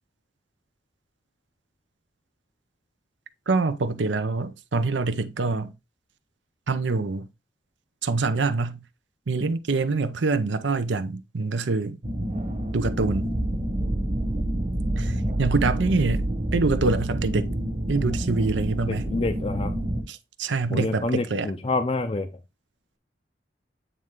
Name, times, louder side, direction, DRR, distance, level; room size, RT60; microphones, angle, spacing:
voice 1, 3.5-5.7 6.7-7.3 8.0-8.8 9.3-12.0 12.7-13.3 15.0-16.3 16.5-17.5 17.9-19.1 20.1-21.5, right 3 dB, 80° right, 0.6 m, -25 dB
sound 1, 12.0-20.0, right 1 dB, 40° right, 1.5 m, -27 dB
voice 2, 18.8-19.7 20.7-22.3, left 2 dB, 30° left, 0.5 m, -27 dB
8.8 x 3.2 x 3.6 m
head